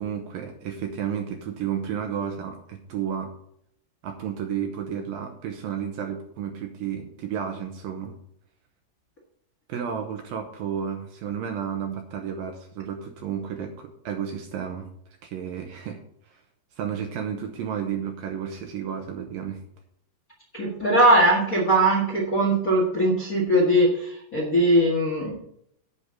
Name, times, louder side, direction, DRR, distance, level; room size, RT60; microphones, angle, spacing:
voice 1, 0.0-3.3 4.0-8.2 9.7-14.9 15.2-16.0 16.3-16.4 16.8-19.6, right 8 dB, 75° right, 4 dB, 2.4 m, -32 dB
voice 2, 20.5-25.4, right 1 dB, 75° left, -3 dB, 0.7 m, -20 dB
8.1 x 6.5 x 7.5 m, 0.71 s
omnidirectional pair, 4.7 m